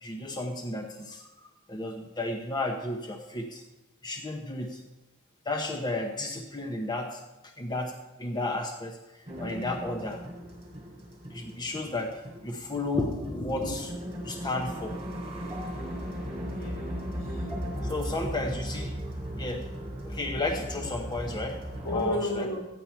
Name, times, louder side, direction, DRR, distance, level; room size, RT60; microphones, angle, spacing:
voice 1, 0.0-3.6 4.0-4.8 5.5-7.2 7.6-7.9 8.2-9.0 9.4-10.2 11.3-13.9 14.2-15.0 17.8-18.9 19.3-19.6 20.0-22.5, left 2 dB, 20° left, 2 dB, 0.8 m, -33 dB
sound 1, 9.3-22.1, equal, 25° right, 3.1 m, -37 dB
voice 2, 16.6-17.5 17.8-18.0 18.3-18.5 21.8-22.6, left 1 dB, 65° left, -2 dB, 2.9 m, -34 dB
13.5 x 10.0 x 4.5 m, 1.1 s
head